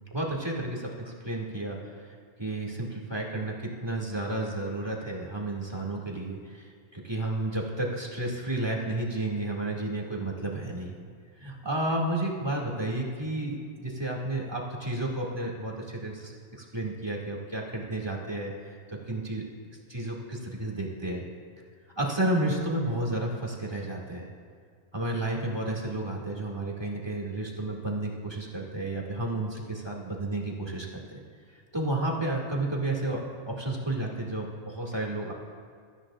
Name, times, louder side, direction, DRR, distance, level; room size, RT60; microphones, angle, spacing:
voice 1, 0.1-1.8 2.4-10.9 11.4-19.5 19.9-21.2 22.0-24.3 24.9-31.2 31.5-33.2 33.5-35.3, right 1 dB, 20° right, -3 dB, 2.4 m, -32 dB
26.5 x 14.0 x 2.5 m, 2.1 s
omnidirectional pair, 1.2 m